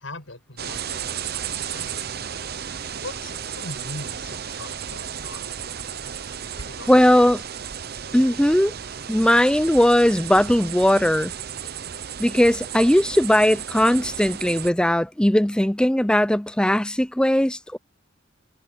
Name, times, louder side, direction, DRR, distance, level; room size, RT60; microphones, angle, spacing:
voice 1, 0.0-2.2 3.0-5.5 6.6-7.1, left 2 dB, 70° left, 7.8 m, -40 dB
sound 1, 0.6-14.7, right 8 dB, 50° right, 0.8 m, -34 dB
voice 2, 6.9-7.4 8.1-8.7 9.1-11.3 12.2-17.8, equal, 5° left, 0.6 m, -18 dB
head